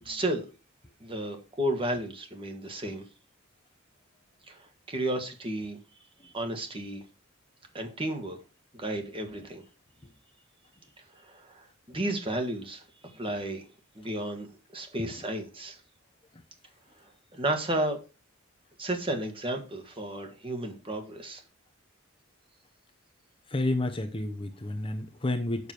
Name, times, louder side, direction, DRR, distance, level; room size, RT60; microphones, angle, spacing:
voice 1, 0.1-0.5 1.0-3.0 4.5-5.8 6.2-7.0 7.7-8.4 8.7-9.6 11.1-12.8 13.1-13.6 14.0-15.8 17.3-18.0 18.8-21.4, right 1 dB, 25° right, 5 dB, 1.7 m, -33 dB
voice 2, 23.5-25.7, left 2 dB, 25° left, 5 dB, 0.9 m, -30 dB
7.0 x 6.7 x 4.5 m, 0.32 s
head